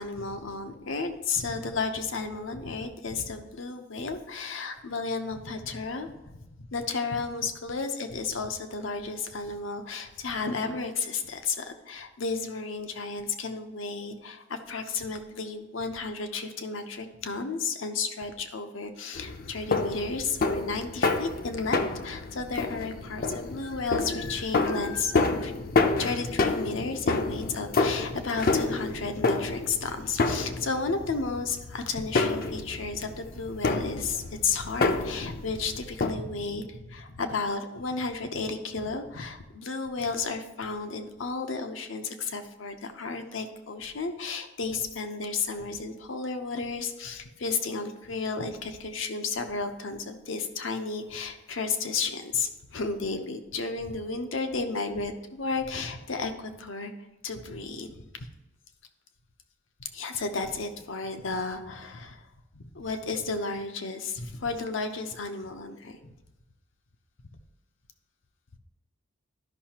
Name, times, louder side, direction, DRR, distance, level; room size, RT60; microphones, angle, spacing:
voice 1, 0.0-25.5 26.0-56.9 57.2-58.3 59.8-62.2 62.5-66.1, left 4 dB, 80° left, 7 dB, 0.8 m, -33 dB
sound 1, 19.1-36.1, left 3 dB, 50° left, 0.6 m, -29 dB
12.0 x 5.6 x 2.9 m, 1.0 s
head